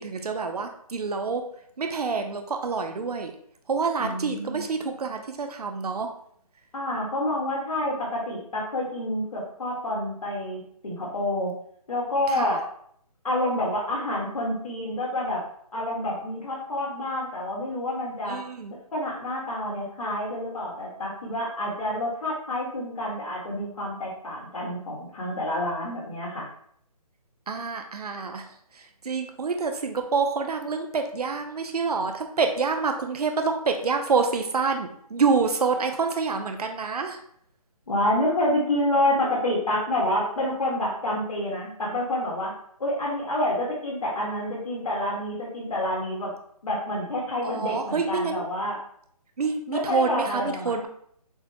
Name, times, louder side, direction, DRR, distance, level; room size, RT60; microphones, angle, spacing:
voice 1, 0.0-1.5 1.8-3.3 3.7-6.1 12.3-12.6 18.3-18.7 27.5-37.2 47.4-48.5 49.4-50.9, right 4 dB, 85° right, 5 dB, 0.7 m, -27 dB
voice 2, 4.0-4.7 6.7-11.5 11.9-12.6 13.2-15.4 15.7-18.4 18.9-26.5 37.9-42.5 42.8-46.3 46.6-48.8 49.7-50.7, left 1 dB, 65° left, -4 dB, 1.7 m, -28 dB
6.6 x 2.2 x 2.8 m, 0.65 s
hypercardioid pair, 175°, 19 cm